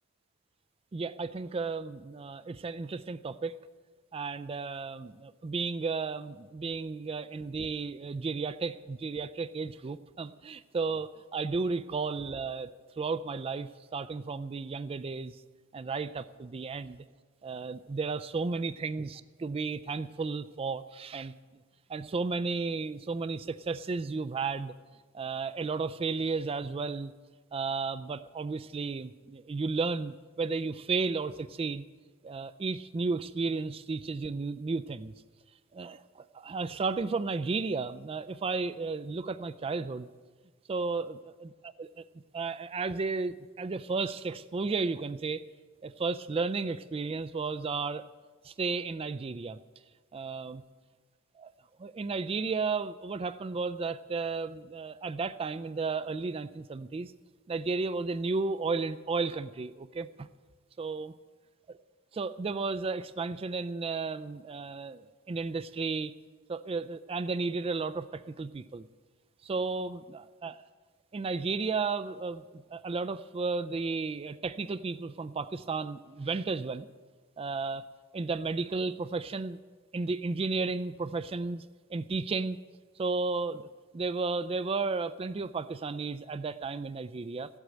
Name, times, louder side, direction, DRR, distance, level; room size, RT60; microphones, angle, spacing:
voice 1, 0.9-3.6 4.1-12.7 13.0-15.4 15.7-17.0 17.4-21.3 21.9-24.7 25.1-27.1 27.5-31.8 32.2-35.1 35.7-40.1 40.7-42.0 42.3-45.5 45.8-48.0 48.4-49.6 50.1-50.6 51.4-51.5 51.8-57.1 57.5-60.3 60.8-61.1 62.1-66.1 66.5-68.9 69.4-70.6 71.1-76.9 77.4-77.8 78.1-79.6 79.9-81.6 81.9-82.6 83.0-83.7 83.9-87.5, right 4 dB, 25° right, 13 dB, 0.3 m, -33 dB
14.5 x 8.1 x 9.0 m, 1.4 s
head